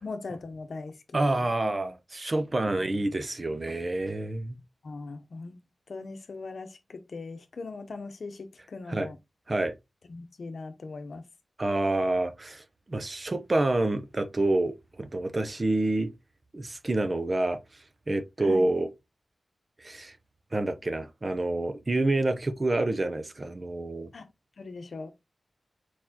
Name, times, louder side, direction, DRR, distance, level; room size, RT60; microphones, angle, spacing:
voice 1, 0.0-1.5 4.8-5.6 5.9-9.2 10.1-11.3 18.4-18.7 24.1-24.3 24.6-25.1, left 3 dB, 65° left, 0.8 m, -40 dB
voice 2, 1.1-4.6 8.9-9.1 9.5-9.7 11.6-16.1 16.5-17.6 18.1-18.9 19.8-20.1 20.5-24.1, right 2 dB, 35° right, 0.6 m, -28 dB
4.4 x 4.2 x 2.8 m
wide cardioid pair, 95°, 0 cm